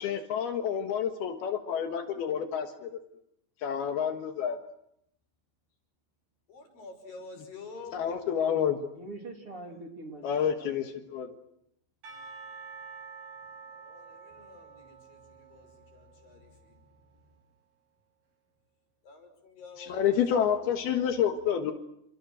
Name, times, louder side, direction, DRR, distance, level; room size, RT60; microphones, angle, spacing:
voice 1, 0.0-3.0 3.6-4.6 7.9-8.9 10.2-11.3 19.8-21.7, left 8 dB, 75° left, 5 dB, 3.4 m, -29 dB
voice 2, 6.5-8.2 13.7-17.2 19.0-20.7, left 3 dB, 60° left, 5 dB, 7.2 m, -49 dB
voice 3, 8.9-10.8, right 2 dB, 35° right, 2 dB, 4.0 m, -44 dB
Percussion / Church bell, 12.0-17.1, right 5 dB, 65° right, 8.5 m, -48 dB
29.5 x 28.0 x 6.4 m, 0.76 s
omnidirectional pair, 4.6 m